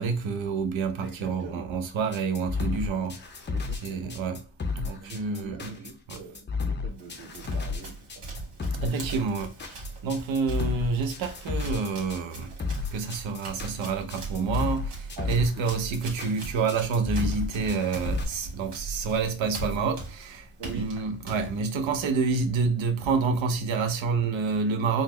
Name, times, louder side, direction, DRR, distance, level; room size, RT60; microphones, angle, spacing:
voice 1, 0.0-3.3 3.8-4.4 4.7-5.7 6.1-6.2 8.8-12.5 12.9-25.0, right 4 dB, 65° right, 0.8 m, -28 dB
voice 2, 1.0-1.7 3.5-4.2 5.0-8.3 8.7-9.2 15.2-15.9 16.5-16.6 20.6-20.9, right 4 dB, 45° right, 1.2 m, -43 dB
sound 1, 2.1-18.2, left 4 dB, 20° left, 0.5 m, -32 dB
Run, 6.9-22.1, right 3 dB, 80° right, 1.6 m, -41 dB
4.0 x 2.1 x 3.1 m
cardioid pair, 95°, 50 cm